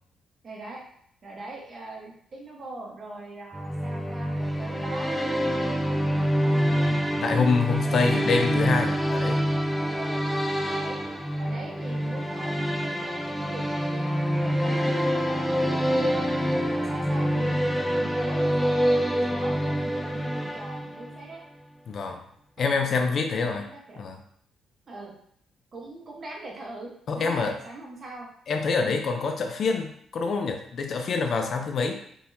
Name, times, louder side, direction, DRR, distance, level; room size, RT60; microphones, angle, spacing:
voice 1, 0.4-0.8 1.2-7.0 7.9-8.4 9.9-11.0 11.4-16.3 16.7-17.6 18.0-21.4 22.6-22.9 23.3-24.0 24.9-25.1 25.7-28.3 28.8-29.0, right 2 dB, 40° right, -1 dB, 1.1 m, -41 dB
sound 1, 3.5-21.2, equal, 5° left, 0.4 m, -26 dB
voice 2, 6.6-9.4 21.9-22.2 22.6-23.7 24.0-24.2 27.1-27.6 28.5-31.9, left 4 dB, 55° left, 5 dB, 0.5 m, -26 dB
3.9 x 2.7 x 2.7 m, 0.67 s
cardioid pair, 90°, 0 cm